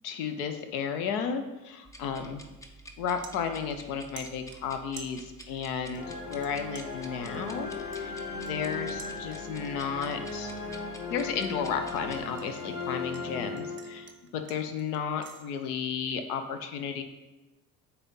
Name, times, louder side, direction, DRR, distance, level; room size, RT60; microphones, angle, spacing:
voice 1, 0.0-2.4 3.0-7.7 8.0-10.5 11.1-17.0, left 7 dB, 60° left, 8 dB, 0.9 m, -33 dB
sound 1, 1.8-12.2, right 1 dB, 5° left, 0.4 m, -50 dB
sound 2, 3.2-3.9 4.2-5.7 6.0-6.5 6.8-9.7 10.1-10.4 10.8-13.3 13.6-15.4, right 5 dB, 25° right, 0.7 m, -50 dB
sound 3, 5.9-14.3, left 3 dB, 30° left, 1.9 m, -37 dB
8.0 x 3.0 x 5.5 m, 1.1 s
figure-of-eight pair, 65°, 50 cm